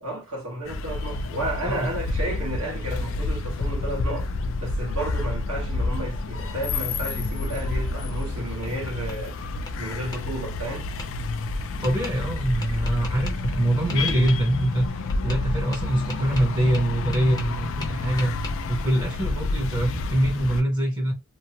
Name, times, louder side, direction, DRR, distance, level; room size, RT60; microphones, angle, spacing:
voice 1, 0.0-4.3 4.6-9.3 9.8-10.9, right 1 dB, 75° right, 1.2 m, -32 dB
sound 1, 0.6-20.6, left 3 dB, 65° left, 0.4 m, -29 dB
Tap, 8.1-9.2 9.7-10.2 11.0-11.1 11.8-12.1 12.6-13.3 13.9-14.4 15.1-15.4 15.7-17.6 17.8-18.5, left 3 dB, 20° left, 0.7 m, -39 dB
voice 2, 11.8-21.1, right 1 dB, 20° right, 0.7 m, -24 dB
2.9 x 2.1 x 2.8 m
head